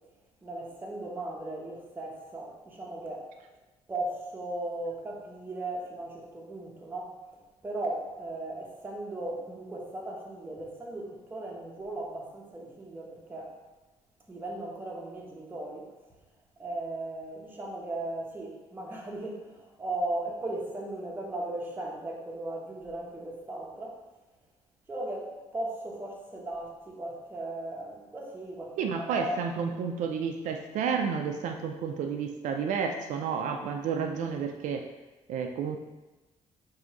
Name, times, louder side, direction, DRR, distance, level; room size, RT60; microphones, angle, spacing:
voice 1, 0.4-3.3 3.9-7.2 7.6-13.6 14.3-15.9 16.6-24.0 24.9-29.5, right 2 dB, 15° right, -3 dB, 0.9 m, -37 dB
voice 2, 28.8-34.9 35.3-35.8, right 6 dB, 80° right, 4 dB, 0.4 m, -31 dB
3.7 x 2.7 x 4.6 m, 1.1 s
cardioid pair, 115°, 12 cm